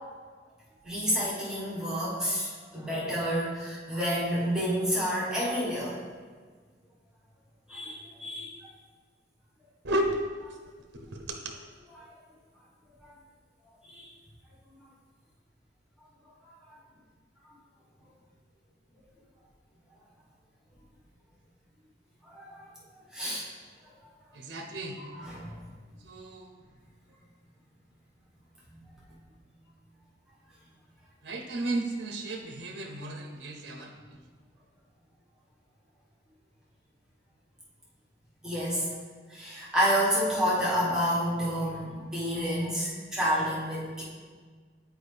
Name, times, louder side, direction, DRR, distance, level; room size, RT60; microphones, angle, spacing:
voice 1, 0.8-5.9 7.7-8.5 13.0-13.1 13.9-14.1 22.2-23.5 25.0-25.6 28.7-28.8 38.4-38.9 39.3-44.0, equal, 5° right, -8 dB, 1.3 m, -29 dB
voice 2, 9.8-10.2 10.9-11.5 24.3-25.0 26.0-26.5 31.2-33.9, right 1 dB, 60° right, 3 dB, 0.6 m, -33 dB
8.1 x 4.6 x 3.3 m, 1.5 s
head